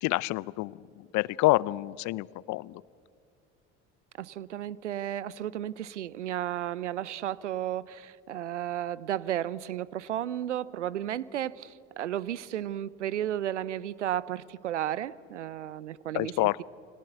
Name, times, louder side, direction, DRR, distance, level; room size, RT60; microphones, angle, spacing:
voice 1, 0.0-0.9 1.1-2.8 16.1-16.6, left 19 dB, 55° left, 24 dB, 0.6 m, -27 dB
voice 2, 4.2-16.6, right 11 dB, 85° right, 21 dB, 0.6 m, -33 dB
29.0 x 22.5 x 8.0 m, 2.4 s
hypercardioid pair, 60°, 35 cm